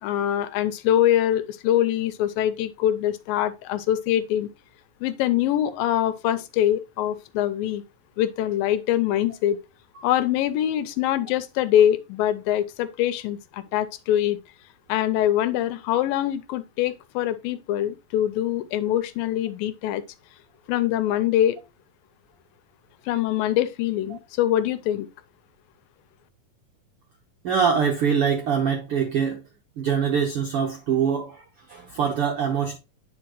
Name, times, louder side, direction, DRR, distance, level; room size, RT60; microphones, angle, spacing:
voice 1, 0.0-4.5 5.0-7.8 8.2-9.6 10.0-14.4 14.9-20.0 20.7-21.6 23.1-25.1, left 12 dB, 90° left, 2.4 m, -23 dB
voice 2, 27.4-29.4 29.8-32.8, right 7 dB, 75° right, 1.3 m, -24 dB
9.6 x 4.6 x 3.0 m
omnidirectional pair, 4.0 m